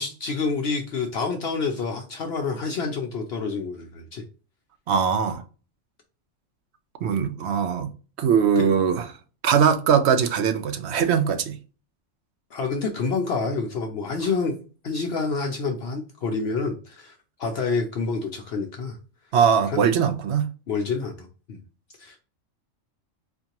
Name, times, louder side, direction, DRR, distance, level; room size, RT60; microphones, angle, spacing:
voice 1, 0.0-4.2 8.6-8.7 12.5-14.6 14.8-19.0 19.7-19.8 20.7-21.6 22.0-22.2, left 4 dB, 60° left, 0.8 m, -28 dB
voice 2, 4.9-5.4 7.0-7.9 8.2-9.1 9.4-11.6 19.3-20.4, right 7 dB, 65° right, 0.8 m, -21 dB
4.3 x 2.8 x 2.9 m
omnidirectional pair, 1.3 m